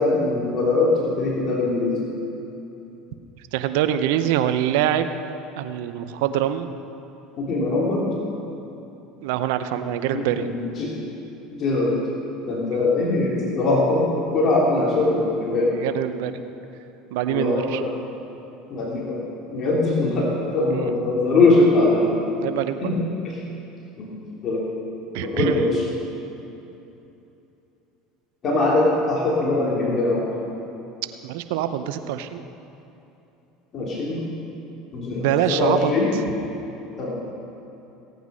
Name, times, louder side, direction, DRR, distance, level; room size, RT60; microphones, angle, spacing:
voice 1, 0.0-1.9 7.4-8.1 10.1-10.9 11.5-11.9 12.4-15.7 17.3-17.9 18.7-19.2 19.5-20.3 20.5-22.2 22.8-23.0 23.2-23.3 24.0-24.1 24.4-24.6 25.2-25.8 28.4-30.3 33.7-34.2 34.9-36.1 37.0-37.1, left 2 dB, 45° left, -4 dB, 3.2 m, -21 dB
voice 2, 3.5-5.2 5.6-6.7 9.2-10.5 12.7-12.9 15.8-16.4 17.1-17.8 20.7-20.9 22.4-22.9 25.1-25.7 31.2-32.4 35.2-35.9, right 11 dB, 75° right, 10 dB, 0.7 m, -24 dB
16.5 x 9.3 x 5.6 m, 2.9 s
hypercardioid pair, 80°, 0 cm